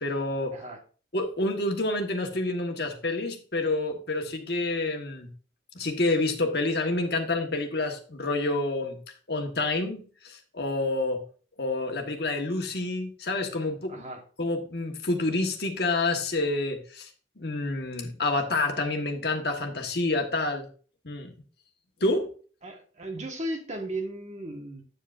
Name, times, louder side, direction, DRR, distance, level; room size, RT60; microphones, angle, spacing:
voice 1, 0.0-0.5 1.1-5.3 5.7-9.0 9.3-11.2 11.6-14.0 14.4-17.1 17.4-20.7 21.0-21.3 22.0-22.3, left 2 dB, 60° left, 3 dB, 1.3 m, -28 dB
voice 2, 13.9-14.2 22.6-24.8, right 1 dB, 40° right, 3 dB, 1.4 m, -35 dB
9.2 x 7.4 x 2.5 m, 0.39 s
head